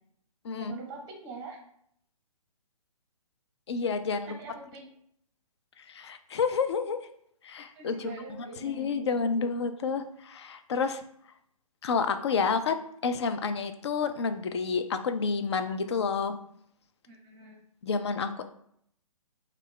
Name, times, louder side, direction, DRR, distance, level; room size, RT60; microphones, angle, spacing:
voice 1, 0.5-1.6 4.2-4.9 7.7-8.9 9.2-9.4 17.1-17.6, right 4 dB, 20° right, 1 dB, 0.7 m, -44 dB
voice 2, 3.7-4.3 5.9-7.0 7.4-8.1 8.6-11.0 11.8-12.8 13.0-16.4 17.8-18.5, left 5 dB, 45° left, 9 dB, 0.4 m, -29 dB
3.1 x 2.4 x 3.6 m, 0.68 s
figure-of-eight pair, 130°, 19 cm